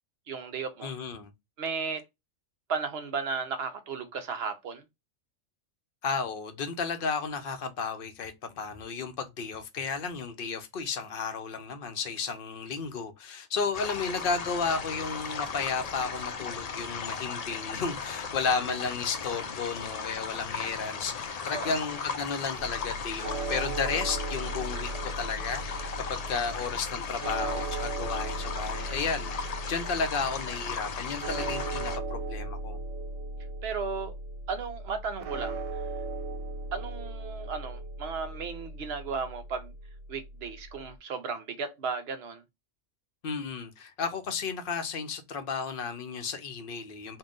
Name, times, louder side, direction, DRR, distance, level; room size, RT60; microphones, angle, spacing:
voice 1, 0.3-0.9 1.6-2.0 2.7-4.8 21.5-21.7 33.6-34.2 34.5-35.8 36.7-39.7 40.1-42.4, right 5 dB, 60° right, 0.8 m, -35 dB
voice 2, 0.8-1.3 6.0-32.8 43.2-47.2, left 5 dB, 55° left, 0.7 m, -33 dB
sound 1, 13.7-32.0, left 5 dB, 75° left, 0.3 m, -37 dB
sound 2, 22.6-41.0, right 2 dB, 90° right, 1.0 m, -37 dB
3.7 x 2.2 x 3.7 m
omnidirectional pair, 1.3 m